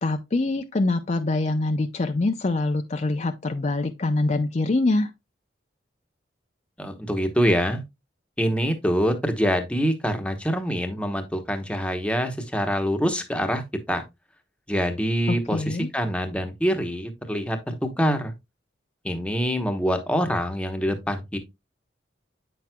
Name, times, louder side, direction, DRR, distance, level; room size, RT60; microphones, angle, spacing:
voice 1, 0.0-5.1 15.3-15.9, left 2 dB, 40° left, 0.5 m, -24 dB
voice 2, 6.8-7.8 8.4-13.6 13.9-14.0 14.7-18.3 19.0-21.4, equal, 5° left, 1.0 m, -25 dB
8.5 x 5.9 x 2.2 m
head